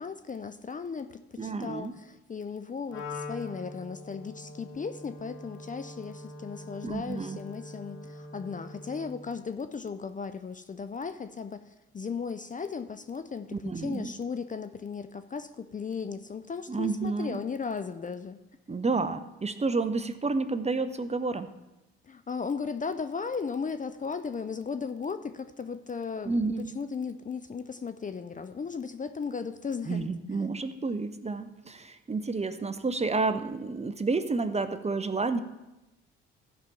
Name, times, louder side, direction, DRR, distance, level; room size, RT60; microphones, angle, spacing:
voice 1, 0.0-18.4 22.0-30.5, left 5 dB, 25° left, 10 dB, 0.6 m, -36 dB
voice 2, 1.4-1.9 6.8-7.4 13.5-14.1 16.7-17.4 18.7-21.5 26.2-26.7 29.9-35.4, right 3 dB, 20° right, 11 dB, 0.8 m, -30 dB
Wind instrument woodwind instrument, 2.9-9.3, left 2 dB, 60° left, 2.4 m, -43 dB
15.0 x 5.2 x 5.8 m, 0.97 s
hypercardioid pair, 55°, 32 cm